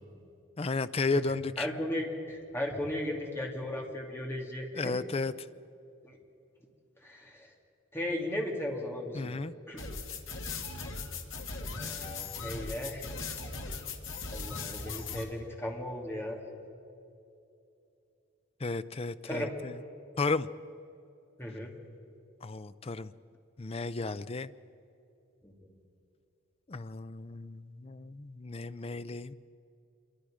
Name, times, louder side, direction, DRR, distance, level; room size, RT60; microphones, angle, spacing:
voice 1, 0.6-1.7 4.7-5.3 9.1-9.5 18.6-19.7 20.2-20.5 22.4-23.1 23.6-24.5 26.7-29.3, left 3 dB, 30° left, 14 dB, 0.5 m, -33 dB
voice 2, 1.6-5.0 6.0-6.2 7.0-7.5 7.9-9.3 9.7-9.9 11.6-13.0 14.3-16.4 19.2-19.5 21.4-21.7 25.4-25.7, left 1 dB, 10° left, 0 dB, 2.4 m, -36 dB
sound 1, 9.8-15.2, left 4 dB, 70° left, 2.1 m, -38 dB
26.0 x 23.5 x 5.0 m, 2.7 s
head